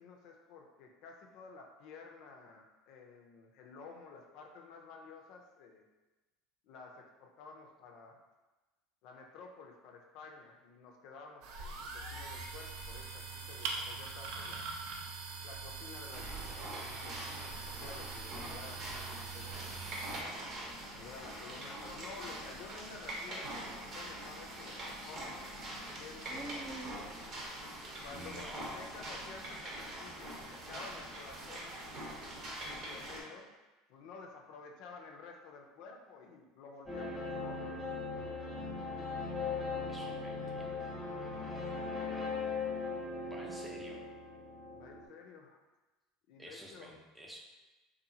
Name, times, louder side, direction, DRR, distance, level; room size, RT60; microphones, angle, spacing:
voice 1, 0.0-5.8 6.6-8.2 9.0-14.7 15.4-20.3 20.9-25.4 25.8-26.4 28.0-32.2 32.7-33.5 33.9-37.8 44.7-45.6 46.3-46.9, left 4 dB, 65° left, 2 dB, 0.4 m, -52 dB
sound 1, 11.4-20.2, right 4 dB, 70° right, 0.4 m, -43 dB
sound 2, 16.1-33.2, right 1 dB, 45° right, 0.8 m, -44 dB
voice 2, 26.3-27.1 28.1-28.7 39.9-40.8 43.3-44.0 46.4-47.4, right 1 dB, 10° right, -1 dB, 0.5 m, -48 dB
sound 3, 36.9-45.1, left 4 dB, 5° left, 0.9 m, -39 dB
2.7 x 2.4 x 2.7 m, 1.1 s
supercardioid pair, 95°, 0 cm